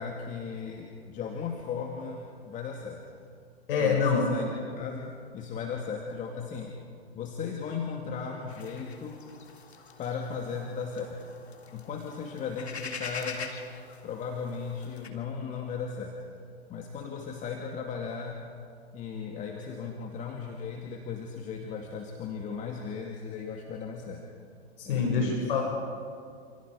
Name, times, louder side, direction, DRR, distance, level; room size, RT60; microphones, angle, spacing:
voice 1, 0.0-3.0 3.8-6.8 7.1-9.2 10.0-11.2 11.7-13.6 14.0-16.2 16.7-18.5 18.9-24.3 24.8-25.5, left 6 dB, 25° left, 1 dB, 2.4 m, -36 dB
voice 2, 3.7-4.2 24.8-25.6, left 5 dB, 55° left, 0 dB, 6.5 m, -25 dB
sound 1, 8.5-15.1, left 4 dB, 75° left, 3.6 m, -44 dB
28.5 x 28.5 x 5.1 m, 2.2 s
figure-of-eight pair, 115°, 32 cm